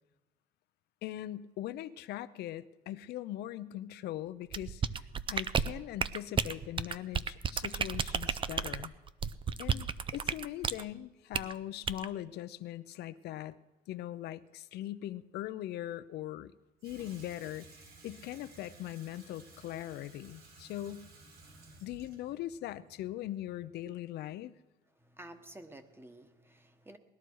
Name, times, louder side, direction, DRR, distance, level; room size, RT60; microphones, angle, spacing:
voice 1, 1.0-8.9 9.6-13.5 13.9-16.5 16.8-17.7 18.0-21.1 21.8-24.5, left 13 dB, 75° left, 13 dB, 0.7 m, -41 dB
sound 1, 4.5-10.8 11.3-11.5 11.9-12.1, right 6 dB, 30° right, 0.6 m, -32 dB
Water tap faucet / Sink (filling or washing), 16.8-23.8, right 3 dB, 70° right, 4.3 m, -56 dB
voice 2, 21.5-21.9 25.0-27.0, right 1 dB, 15° right, 9 dB, 1.3 m, -52 dB
19.5 x 12.5 x 4.7 m, 1.1 s
cardioid pair, 110°, 17 cm